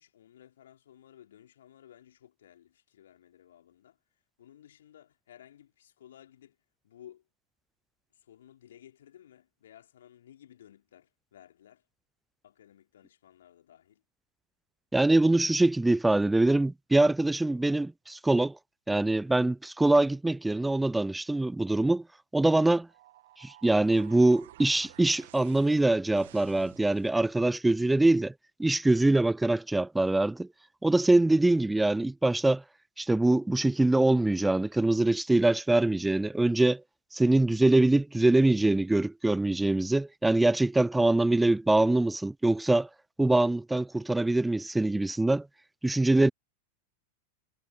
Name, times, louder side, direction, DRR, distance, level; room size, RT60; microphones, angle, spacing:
voice 1, 0.0-4.0 4.4-6.6 6.8-7.2 8.2-11.8 12.4-14.0, left 11 dB, 60° left, 5.5 m, -56 dB
voice 2, 14.9-18.6 18.9-22.0 22.3-22.9 23.4-28.3 28.6-30.5 30.8-32.6 33.0-36.8 37.1-42.9 43.2-45.5 45.8-46.3, right 2 dB, 5° right, 0.4 m, -24 dB
sound 1, 22.9-27.5, right 15 dB, 55° right, 2.2 m, -53 dB
figure-of-eight pair, 90°, 0 cm